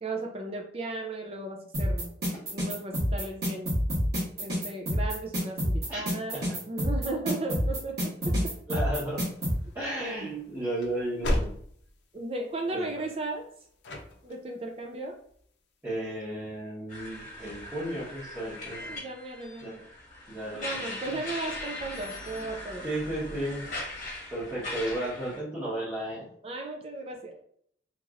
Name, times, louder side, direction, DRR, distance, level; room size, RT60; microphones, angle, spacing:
voice 1, 0.0-2.1 2.5-3.7 4.4-6.4 6.7-8.5 10.2-10.4 12.1-13.5 14.2-15.2 18.8-19.8 20.5-22.8 26.4-27.4, right 2 dB, 35° right, 3 dB, 0.4 m, -36 dB
Drumkit leading hats, 1.7-9.5, equal, 60° right, 1.4 m, -27 dB
voice 2, 5.9-6.6 8.7-9.3 9.7-11.5 12.6-12.9 15.8-19.0 19.6-19.7 20.3-21.2 22.8-23.6 24.3-26.3, right 1 dB, 15° right, -11 dB, 1.0 m, -34 dB
sound 1, 8.7-16.0, left 1 dB, 75° left, 0.5 m, -38 dB
sound 2, 16.9-25.4, left 2 dB, 45° left, 1.0 m, -40 dB
3.0 x 2.9 x 2.4 m, 0.65 s
head